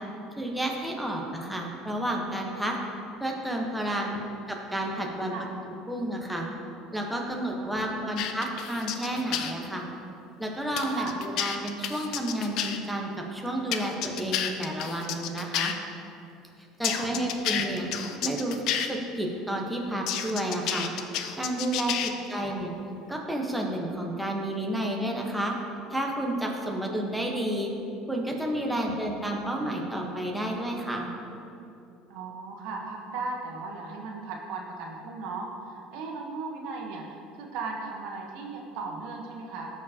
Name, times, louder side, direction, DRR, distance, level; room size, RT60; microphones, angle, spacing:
voice 1, 0.4-2.8 3.2-4.2 4.5-5.3 5.9-6.5 6.9-9.9 10.4-15.7 16.8-17.9 18.2-22.7 23.1-25.5 25.9-27.7 28.1-31.1, right 1 dB, 5° right, 0 dB, 1.0 m, -31 dB
voice 2, 7.6-8.2 10.9-11.1 16.9-17.6 22.0-22.6 32.1-37.0 37.3-39.7, right 4 dB, 70° right, 0 dB, 1.1 m, -37 dB
sound 1, 8.2-9.5 10.8-12.8 13.7-15.7 16.8-18.9 20.1-22.1, left 9 dB, 60° left, 0.5 m, -30 dB
13.5 x 4.7 x 2.8 m, 2.6 s
supercardioid pair, 100°, 0 cm